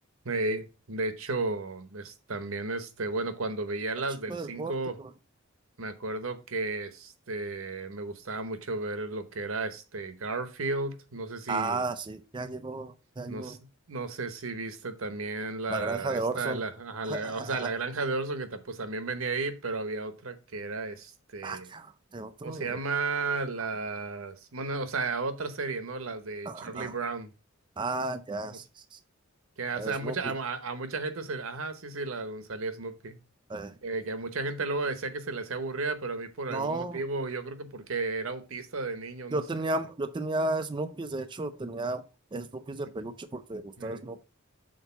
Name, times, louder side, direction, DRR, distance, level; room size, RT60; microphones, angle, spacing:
voice 1, 0.2-5.0 5.8-11.8 13.3-13.6 13.9-21.7 22.4-27.3 29.6-33.2 33.8-39.4 43.8-44.0, right 3 dB, 80° right, 1.0 m, -33 dB
voice 2, 4.3-4.7 11.5-13.6 15.7-16.6 17.0-17.7 21.4-22.8 26.5-26.9 27.8-28.6 28.9-29.0 29.8-30.3 33.5-33.7 36.5-37.0 39.3-42.0 42.3-44.2, right 2 dB, 25° right, 0.4 m, -33 dB
6.5 x 4.0 x 5.6 m
head